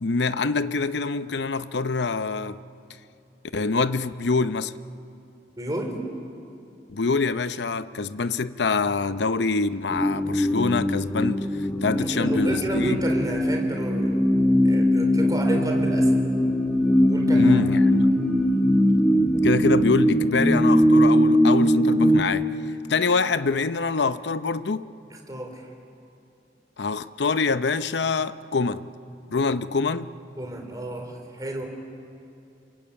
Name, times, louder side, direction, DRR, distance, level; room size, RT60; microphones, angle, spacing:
voice 1, 0.0-2.6 3.5-4.7 6.9-13.0 17.3-18.1 19.4-22.5 22.9-24.9 26.8-28.8 29.3-30.1, left 4 dB, 75° left, 0.7 m, -25 dB
voice 2, 5.6-6.0 11.9-14.2 14.6-16.1 17.1-17.6 25.1-25.7 30.4-31.7, right 1 dB, 20° right, 3.6 m, -31 dB
sound 1, 9.9-22.2, equal, 5° left, 1.9 m, -20 dB
30.0 x 22.5 x 8.6 m
head